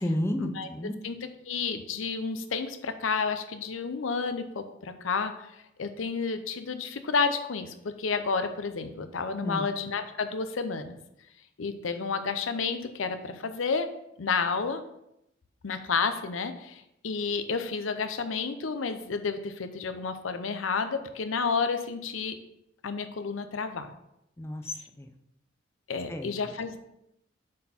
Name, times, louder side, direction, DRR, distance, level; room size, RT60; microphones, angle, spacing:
voice 1, 0.0-1.0 9.4-9.7 24.4-25.1 26.1-26.3, left 1 dB, 15° left, 6 dB, 0.5 m, -31 dB
voice 2, 1.0-5.3 5.8-11.0 11.6-13.9 14.2-14.8 15.6-22.4 22.8-23.9 25.9-26.8, left 5 dB, 90° left, 9 dB, 0.7 m, -31 dB
7.4 x 4.4 x 4.3 m, 0.82 s
head